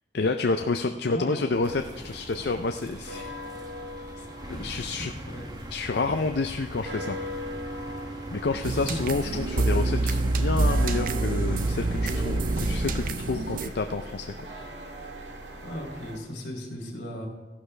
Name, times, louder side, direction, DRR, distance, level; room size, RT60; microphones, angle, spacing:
voice 1, 0.1-3.3 4.2-5.1 5.7-7.2 8.3-14.3, left 3 dB, 65° left, 6 dB, 0.5 m, -29 dB
voice 2, 1.0-1.5 5.1-5.5 8.7-8.9 15.6-17.3, equal, 85° left, 0 dB, 2.7 m, -37 dB
sound 1, 1.5-16.2, equal, 90° right, 1.7 m, -40 dB
sound 2, 1.6-13.1, right 1 dB, 25° right, 1.1 m, -36 dB
sound 3, 8.6-13.7, right 2 dB, 50° right, 0.6 m, -27 dB
15.0 x 11.5 x 3.3 m, 1.3 s
head